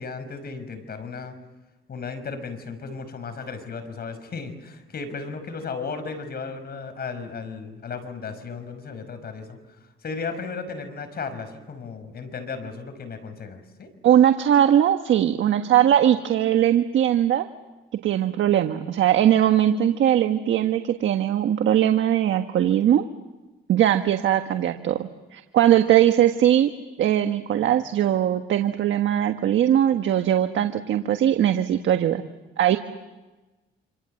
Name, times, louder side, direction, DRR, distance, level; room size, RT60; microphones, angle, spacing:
voice 1, 0.0-1.3 1.9-9.6 10.0-13.9, left 4 dB, 50° left, 9 dB, 5.5 m, -35 dB
voice 2, 14.0-17.5 18.0-23.0 23.7-26.7 27.0-32.2 32.6-32.8, right 11 dB, 75° right, 7 dB, 1.5 m, -20 dB
28.0 x 27.0 x 7.8 m, 1.1 s
cardioid pair, 90°, 20 cm